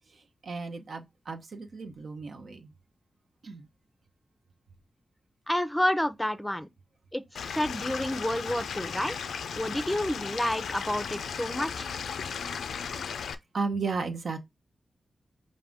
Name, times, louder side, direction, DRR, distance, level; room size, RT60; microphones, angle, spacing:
voice 1, 0.0-2.7 3.4-3.7 12.9-13.0 13.5-14.4, right 4 dB, 70° right, 0.8 m, -35 dB
voice 2, 5.5-6.7 7.1-9.2 9.5-11.9, left 1 dB, 10° left, 0.6 m, -29 dB
Stream / Liquid, 7.4-13.4, left 6 dB, 85° left, 0.3 m, -36 dB
4.9 x 2.6 x 3.4 m
cardioid pair, 45°, 0 cm